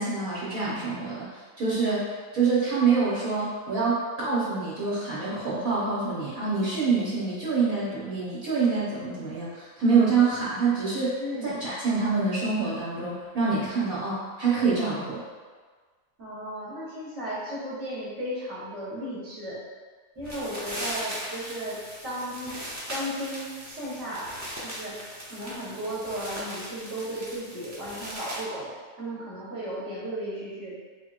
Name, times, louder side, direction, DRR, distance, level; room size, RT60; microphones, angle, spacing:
voice 1, 0.0-2.1 2.3-15.2, right 4 dB, 75° right, -9 dB, 1.6 m, -26 dB
voice 2, 11.2-11.6 16.2-19.6 20.1-22.5 22.9-24.3 24.6-25.0 25.3-28.7 29.0-30.8, equal, 55° right, -9 dB, 1.6 m, -35 dB
sound 1, 20.2-28.4, equal, 15° right, 0.6 m, -38 dB
4.9 x 3.0 x 2.5 m, 1.5 s
omnidirectional pair, 1.5 m